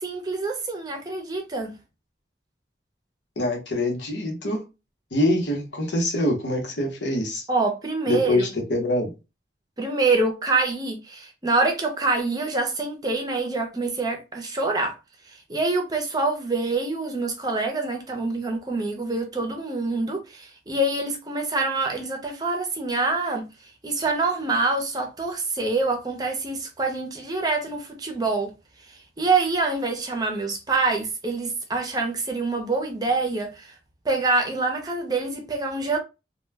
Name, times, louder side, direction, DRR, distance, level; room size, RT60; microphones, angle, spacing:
voice 1, 0.0-1.8 7.5-8.5 9.8-14.9 15.5-23.4 23.8-28.5 29.2-33.7 34.0-36.0, right 3 dB, 20° right, 0.5 m, -25 dB
voice 2, 3.4-4.6 5.1-7.5 8.1-9.1, left 1 dB, 85° left, 0.9 m, -24 dB
2.2 x 2.1 x 3.2 m
head